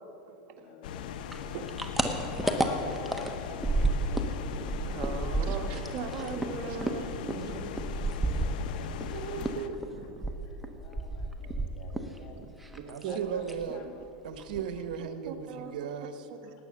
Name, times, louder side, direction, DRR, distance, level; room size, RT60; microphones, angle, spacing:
voice 1, 0.6-1.3 2.4-3.3 8.3-8.9 9.3-10.1 10.4-12.5 13.1-14.0, left 6 dB, 50° left, 4 dB, 2.2 m, -48 dB
sound 1, 0.8-9.7, left 8 dB, 75° left, 0.8 m, -39 dB
sound 2, 1.3-4.3 4.6-9.1 9.4-12.2 12.4-13.1 13.4-13.7 14.0-14.1 14.4-15.0, right 2 dB, 5° right, 1.0 m, -31 dB
voice 2, 4.7-8.1 9.1-9.7 12.4-12.5 12.8-13.4 15.3-15.7 16.4-16.5, right 5 dB, 45° right, 3 dB, 1.6 m, -39 dB
voice 3, 12.8-13.8 14.2-16.3, right 7 dB, 75° right, 9 dB, 1.0 m, -36 dB
18.5 x 8.5 x 6.5 m, 2.9 s
supercardioid pair, 135°, 5 cm